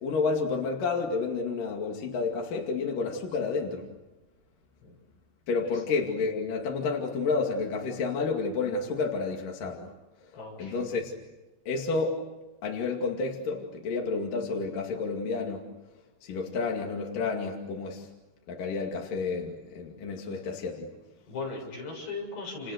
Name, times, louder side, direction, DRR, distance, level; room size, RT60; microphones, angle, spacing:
voice 1, 0.0-3.9 5.5-9.9 10.6-11.1 11.7-12.2 12.6-15.7 16.2-18.1 18.5-20.9, left 4 dB, 55° left, 0 dB, 3.8 m, -30 dB
voice 2, 10.3-10.8 21.3-22.7, left 3 dB, 70° left, 0 dB, 9.6 m, -37 dB
30.0 x 29.5 x 6.6 m, 1.1 s
omnidirectional pair, 4.8 m